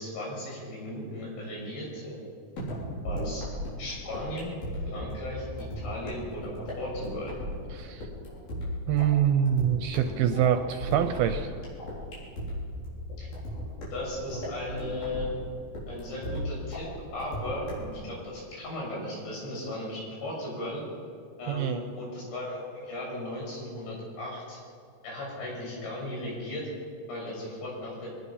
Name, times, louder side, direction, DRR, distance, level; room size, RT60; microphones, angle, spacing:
voice 1, 0.0-2.2 3.1-3.5 3.8-4.5 4.9-7.4 13.2-13.3 13.9-15.3 15.9-16.9 17.1-17.7 18.0-20.8 21.4-24.6 25.0-26.7 27.1-28.1, left 1 dB, 85° left, -3 dB, 8.8 m, -36 dB
sound 1, 2.6-18.0, equal, 55° left, 7.1 m, -37 dB
voice 2, 7.7-8.1 8.9-11.5 21.5-21.8, right 9 dB, 75° right, 8 dB, 2.4 m, -25 dB
23.5 x 20.0 x 5.7 m, 2.3 s
omnidirectional pair, 4.9 m